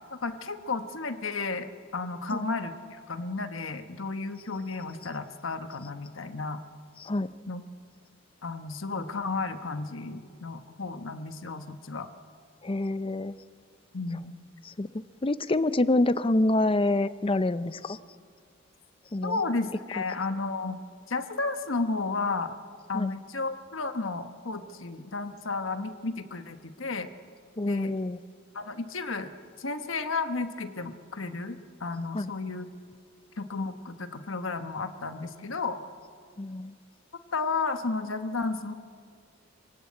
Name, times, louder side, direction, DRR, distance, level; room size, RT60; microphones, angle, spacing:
voice 1, 0.1-6.6 7.5-7.6 8.4-12.1 13.9-14.3 19.2-20.8 21.1-22.6 22.9-27.1 27.7-27.9 28.5-29.3 29.6-32.7 33.4-35.8 37.3-38.7, left 3 dB, 70° left, 8 dB, 1.3 m, -33 dB
voice 2, 12.6-13.3 14.6-18.0 19.1-19.4 22.9-23.1 27.6-28.2 32.1-32.3 36.4-36.7, left 2 dB, 25° left, 14 dB, 0.6 m, -27 dB
26.5 x 17.5 x 8.6 m, 2.1 s
head